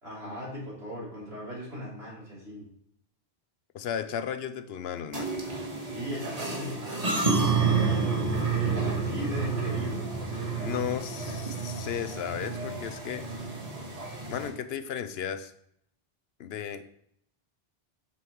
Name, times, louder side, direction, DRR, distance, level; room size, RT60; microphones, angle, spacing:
voice 1, 0.0-2.7 5.9-10.1, equal, 85° right, -6 dB, 3.5 m, -38 dB
voice 2, 3.7-5.4 10.5-13.3 14.3-15.5 16.4-16.8, left 8 dB, 80° left, 11 dB, 0.9 m, -34 dB
sound 1, 5.1-14.5, right 4 dB, 40° right, 1.4 m, -30 dB
7.8 x 7.1 x 3.1 m, 0.71 s
omnidirectional pair, 1.0 m